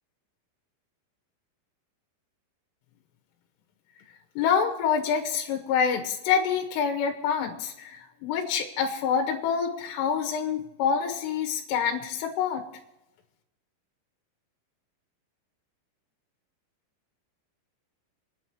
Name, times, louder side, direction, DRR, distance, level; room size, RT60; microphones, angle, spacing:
voice 1, 4.4-12.6, left 7 dB, 90° left, 2 dB, 3.7 m, -27 dB
29.5 x 10.0 x 3.0 m, 0.94 s
omnidirectional pair, 5.7 m